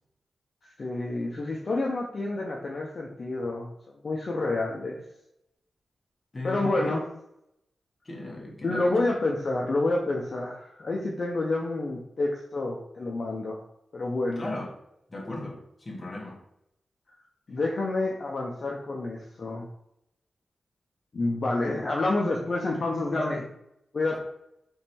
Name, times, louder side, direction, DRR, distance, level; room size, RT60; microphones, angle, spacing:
voice 1, 0.6-5.0 6.4-7.0 8.6-13.6 13.9-14.5 17.5-19.7 21.1-23.5 23.9-24.2, left 2 dB, 45° left, -2 dB, 0.6 m, -28 dB
voice 2, 6.3-6.9 8.0-9.0 14.3-14.7 15.1-16.4 24.1-24.2, left 2 dB, 30° left, -1 dB, 1.0 m, -36 dB
3.6 x 3.1 x 4.3 m, 0.79 s
wide cardioid pair, 130°, 0 cm